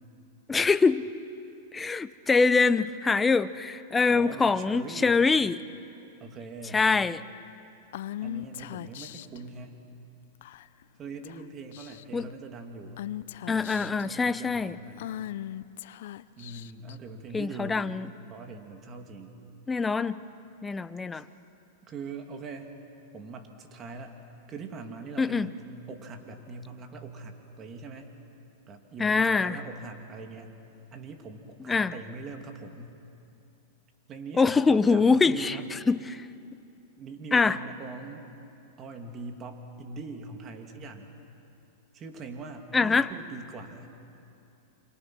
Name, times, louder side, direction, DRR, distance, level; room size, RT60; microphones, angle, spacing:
voice 1, 0.5-1.1 1.7-5.6 6.7-7.2 12.1-12.3 13.5-14.8 17.3-18.1 19.7-20.2 20.6-21.2 25.2-25.5 29.0-29.6 31.7-31.9 34.4-35.6 35.9-36.2 37.3-37.6 42.7-43.1, left 4 dB, 15° left, 14 dB, 0.7 m, -24 dB
voice 2, 4.1-5.2 6.2-6.8 8.2-9.8 11.0-13.0 13.5-15.1 16.4-17.8 18.3-19.3 21.1-21.3 21.9-22.7 23.1-24.1 24.5-28.1 28.7-30.6 30.9-32.9 34.1-35.7 37.0-38.3 38.8-41.1 41.9-43.9, right 4 dB, 30° right, 4 dB, 2.5 m, -42 dB
Female speech woman speaking / Whispering, 7.9-9.4 10.4-10.8 11.2-11.4 11.7-12.2 13.0-14.1 15.0-16.9, left 12 dB, 70° left, 0.6 m, -38 dB
29.0 x 25.5 x 6.2 m, 2.7 s
hypercardioid pair, 125°, 0 cm